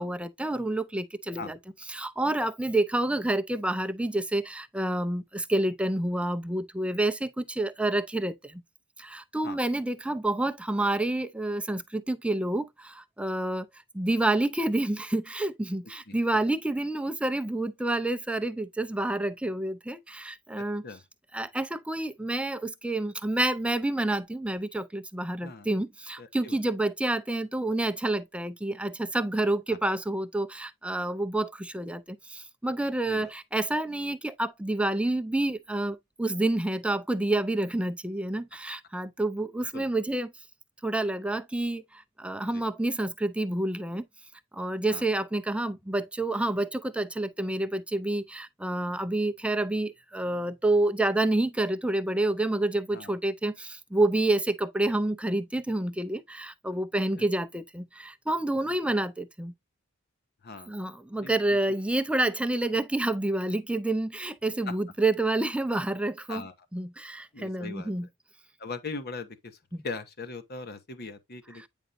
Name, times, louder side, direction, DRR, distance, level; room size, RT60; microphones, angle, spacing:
voice 1, 0.0-1.6 1.9-8.6 9.0-13.7 13.9-20.8 21.3-40.3 40.8-44.0 44.5-59.5 60.7-66.4 66.7-68.1 69.7-69.8, right 2 dB, 5° right, 0.5 m, -28 dB
voice 2, 25.4-25.7 26.2-26.6 29.7-29.8 33.0-33.3 39.7-39.9 42.5-42.6 44.9-45.1 52.9-53.1 57.1-57.2 60.4-60.9 61.2-61.8 64.7-64.8 66.3-66.5 67.3-68.1 68.6-69.6 69.8-71.7, left 3 dB, 50° left, 1.2 m, -40 dB
9.0 x 5.1 x 2.6 m
head